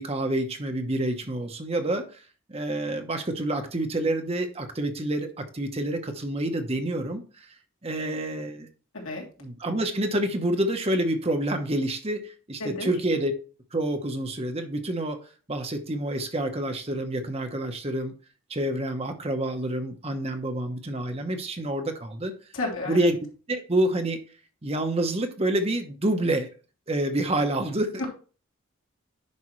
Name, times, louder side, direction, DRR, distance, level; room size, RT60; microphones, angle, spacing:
voice 1, 0.0-2.2 2.5-7.5 7.8-8.7 9.4-13.3 13.7-18.1 18.5-22.3 22.9-23.2 23.5-24.2 24.6-26.5 26.9-28.1, right 1 dB, 30° right, 1.0 m, -28 dB
voice 2, 12.6-12.9 22.5-23.1, left 2 dB, 80° left, 3.0 m, -31 dB
9.7 x 5.8 x 3.2 m
head